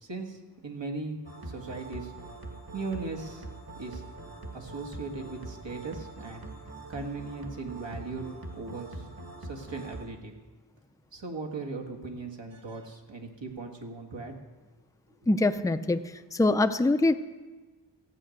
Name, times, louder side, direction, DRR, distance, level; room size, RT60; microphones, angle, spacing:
voice 1, 0.0-1.2 1.5-2.1 2.7-3.5 3.8-4.0 4.5-6.4 6.9-8.3 8.5-9.0 9.4-10.3 11.1-14.3, right 3 dB, 75° right, 1 dB, 1.9 m, -38 dB
sound 1, 1.2-10.0, right 2 dB, 55° right, 2.0 m, -43 dB
voice 2, 15.3-16.0 16.3-17.1, left 2 dB, 10° left, 9 dB, 0.5 m, -23 dB
15.0 x 9.2 x 6.5 m, 1.3 s
wide cardioid pair, 90°, 44 cm